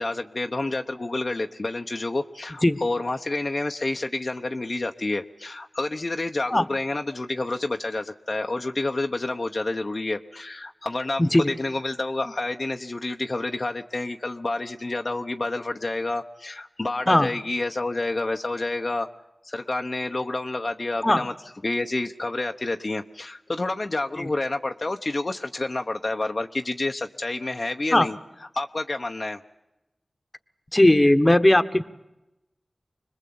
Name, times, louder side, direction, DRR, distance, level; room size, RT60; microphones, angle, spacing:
voice 1, 0.0-19.1 19.4-21.3 21.6-28.2 28.5-29.4, left 2 dB, 50° left, 4 dB, 0.9 m, -29 dB
voice 2, 30.7-31.8, left 1 dB, 25° left, 11 dB, 1.2 m, -18 dB
25.5 x 21.0 x 8.6 m, 0.92 s
wide cardioid pair, 50°, 0 cm